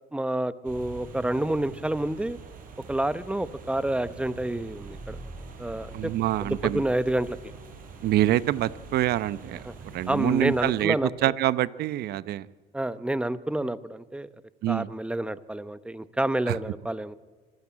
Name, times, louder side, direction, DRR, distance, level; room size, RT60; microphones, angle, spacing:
voice 1, 0.1-2.4 2.9-5.2 5.6-6.1 6.4-7.4 9.6-9.7 10.1-11.3 12.7-14.3 14.7-17.2, right 1 dB, 5° right, 13 dB, 0.9 m, -28 dB
sound 1, 0.6-10.9, right 4 dB, 55° right, 5.3 m, -44 dB
voice 2, 5.9-6.8 8.0-9.6 9.9-11.0 11.2-12.5 14.6-14.9 16.5-16.6, right 13 dB, 70° right, 16 dB, 0.8 m, -25 dB
25.5 x 15.0 x 8.6 m, 1.4 s
cardioid pair, 110°, 17 cm